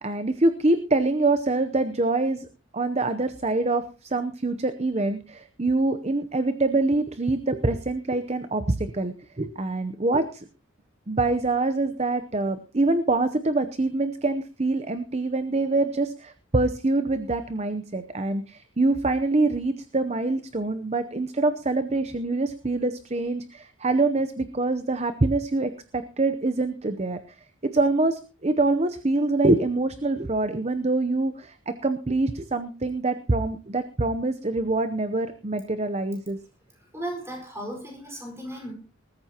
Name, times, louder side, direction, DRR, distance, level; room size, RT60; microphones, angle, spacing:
voice 1, 0.0-2.5 2.7-10.4 11.1-27.2 27.6-36.4, right 2 dB, 30° right, 10 dB, 0.7 m, -25 dB
voice 2, 36.8-38.7, right 1 dB, 10° right, 1 dB, 4.6 m, -36 dB
20.0 x 14.0 x 2.9 m, 0.35 s
head